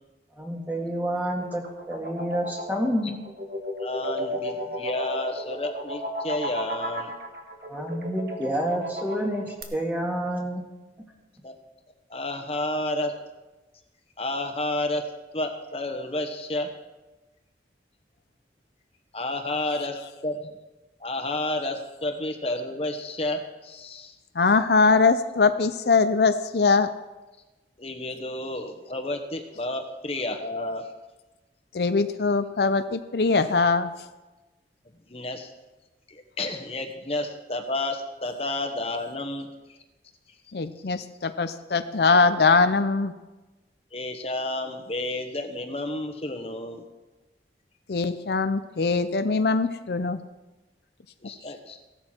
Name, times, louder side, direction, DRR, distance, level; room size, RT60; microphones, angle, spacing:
voice 1, 0.4-3.2 7.7-9.5 9.7-10.6, equal, 10° right, 0 dB, 2.1 m, -28 dB
sound 1, 1.1-9.6, equal, 60° right, 1.8 m, -34 dB
voice 2, 3.8-7.1 11.4-11.5 12.1-13.1 14.2-15.0 15.3-16.7 19.1-20.6 21.0-24.1 27.8-30.9 35.1-35.5 36.1-39.5 43.9-46.8 51.2-51.8, left 2 dB, 35° left, 5 dB, 1.2 m, -31 dB
voice 3, 24.4-26.9 31.7-33.9 40.5-43.1 47.9-50.2, left 4 dB, 65° left, 10 dB, 0.6 m, -22 dB
16.5 x 12.0 x 4.5 m, 1.1 s
head